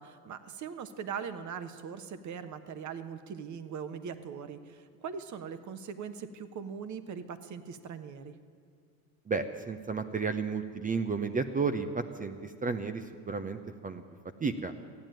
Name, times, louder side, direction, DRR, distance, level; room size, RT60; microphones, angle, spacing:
voice 1, 0.0-8.3, right 7 dB, 40° right, 11 dB, 1.2 m, -41 dB
voice 2, 9.3-14.0 14.4-14.7, right 4 dB, 20° right, 8 dB, 0.7 m, -32 dB
14.5 x 9.0 x 8.9 m, 2.1 s
hypercardioid pair, 90°, 46 cm